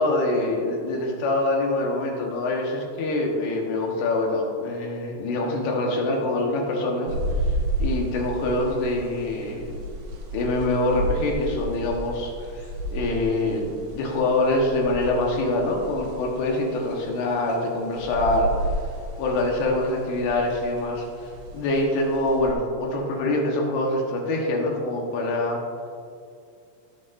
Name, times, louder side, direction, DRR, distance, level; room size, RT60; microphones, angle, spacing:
voice 1, 0.0-7.1 7.8-9.8 10.3-18.5 19.2-25.6, left 2 dB, 75° left, -1 dB, 3.4 m, -25 dB
sound 1, 7.1-22.5, right 1 dB, 80° right, 3.4 m, -32 dB
17.5 x 6.5 x 2.6 m, 2.3 s
omnidirectional pair, 4.8 m